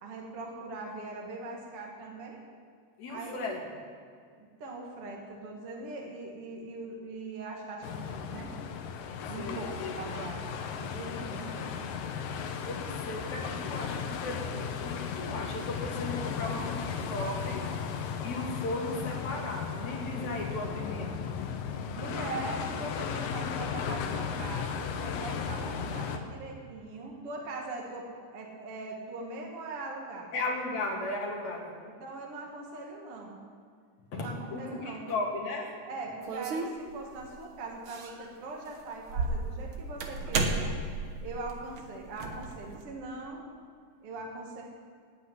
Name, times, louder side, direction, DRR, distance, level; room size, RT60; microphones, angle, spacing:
voice 1, 0.0-2.4 3.1-3.5 4.4-8.6 9.3-10.5 10.8-11.8 22.0-28.1 28.3-30.3 32.0-33.4 34.1-35.0 35.9-40.8 41.2-43.4 44.0-44.6, right 3 dB, 50° right, -1 dB, 2.0 m, -41 dB
voice 2, 3.0-3.6 9.4-10.1 12.7-17.7 18.2-21.2 30.3-31.8 34.1-35.7, left 2 dB, 60° left, 0 dB, 3.1 m, -36 dB
sound 1, 7.8-26.2, left 6 dB, 80° left, 2.6 m, -35 dB
sound 2, 36.2-37.3 37.9-38.3 38.7-42.8, right 3 dB, 70° right, 1.2 m, -33 dB
11.0 x 8.5 x 9.6 m, 2.2 s
omnidirectional pair, 3.9 m